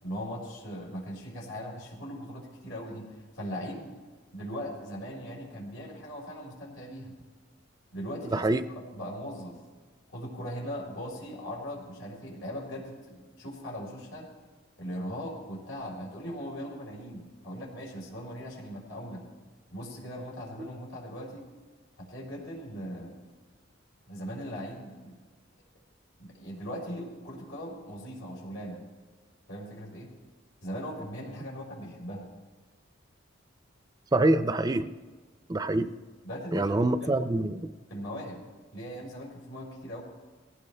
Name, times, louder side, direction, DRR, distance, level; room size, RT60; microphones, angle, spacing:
voice 1, 0.0-3.9 4.3-7.1 7.9-8.5 8.7-9.6 10.1-14.3 14.8-19.2 19.7-21.5 22.0-23.2 24.1-25.1 26.2-28.8 29.5-30.1 30.6-32.3 36.2-37.3 37.9-38.4 38.7-40.0, equal, 85° left, -4 dB, 4.2 m, -39 dB
voice 2, 8.3-8.6 34.1-34.9 35.5-35.9 36.5-37.7, right 2 dB, 20° right, 11 dB, 0.4 m, -25 dB
18.5 x 16.0 x 3.3 m, 1.4 s
head